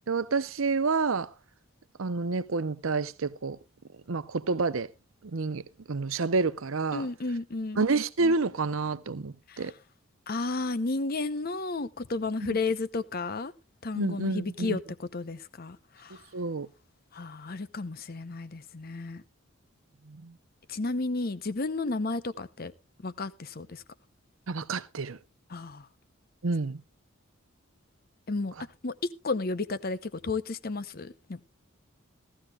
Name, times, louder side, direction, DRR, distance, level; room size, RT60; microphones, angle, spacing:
voice 1, 0.1-1.3 2.0-3.6 4.1-4.9 5.3-5.6 5.9-7.1 7.8-9.7 14.0-14.8 16.3-16.7 20.1-20.3 24.5-25.2 26.4-26.8, right 4 dB, 75° right, 0.8 m, -29 dB
voice 2, 6.9-7.9 9.5-9.7 10.3-13.5 13.8-16.2 17.1-19.2 20.7-22.7 23.0-23.8 25.5-25.9 28.3-28.5 28.8-28.9 29.2-31.4, left 3 dB, 45° left, 0.8 m, -32 dB
17.5 x 13.5 x 2.3 m
head